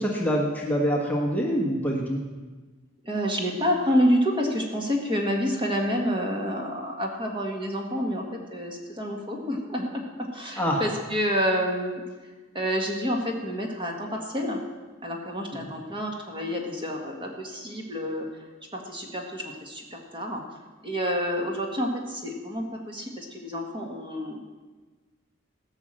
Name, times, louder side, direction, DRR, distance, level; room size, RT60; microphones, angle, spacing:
voice 1, 0.0-2.2 10.6-10.8, equal, 10° left, -2 dB, 1.4 m, -25 dB
voice 2, 3.0-8.2 8.5-12.0 12.5-14.6 15.0-18.3 18.7-20.4 20.8-24.4, equal, 25° right, 1 dB, 1.8 m, -28 dB
16.5 x 6.2 x 7.6 m, 1.3 s
head